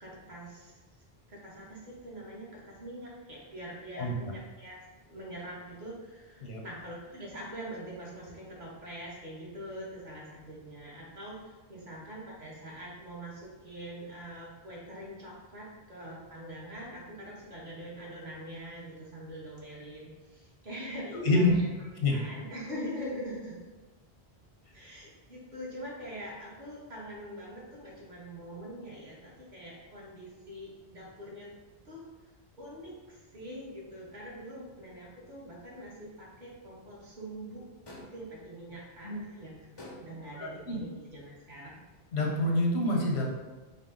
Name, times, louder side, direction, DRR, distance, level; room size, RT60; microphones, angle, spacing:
voice 1, 0.0-0.8 1.3-21.7 22.1-23.6 24.7-31.5 31.8-32.0 32.6-41.8, equal, 50° right, -5 dB, 1.2 m, -44 dB
voice 2, 21.1-21.6 22.0-22.3 39.0-39.2 40.4-40.8 42.1-43.3, left 2 dB, 85° left, -2 dB, 1.1 m, -27 dB
sound 1, 37.9-38.4 39.8-40.4, left 1 dB, 35° left, 0.5 m, -48 dB
5.0 x 2.0 x 3.6 m, 1.2 s
omnidirectional pair, 1.1 m